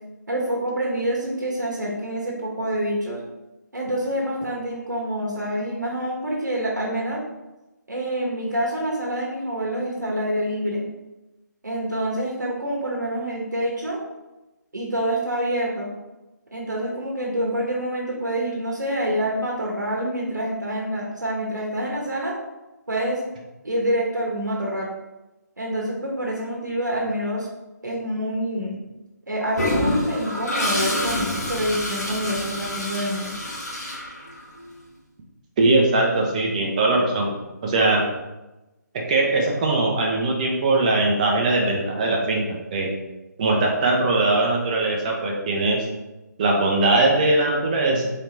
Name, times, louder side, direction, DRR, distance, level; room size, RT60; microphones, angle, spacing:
voice 1, 0.3-3.2 3.7-7.2 7.9-10.8 11.6-14.0 14.7-15.9 16.5-22.3 22.9-23.2 23.6-24.9 25.6-27.5 27.8-28.7 29.3-33.5, right 1 dB, 75° right, -2 dB, 1.0 m, -27 dB
Toilet flush, 29.6-34.6, left 1 dB, 60° left, 1.3 m, -27 dB
voice 2, 35.6-37.3 37.6-38.0 39.1-42.9 43.4-45.9 46.4-48.1, right 2 dB, 25° right, -1 dB, 0.6 m, -20 dB
3.8 x 2.9 x 3.3 m, 1.0 s
figure-of-eight pair, 150°, 10 cm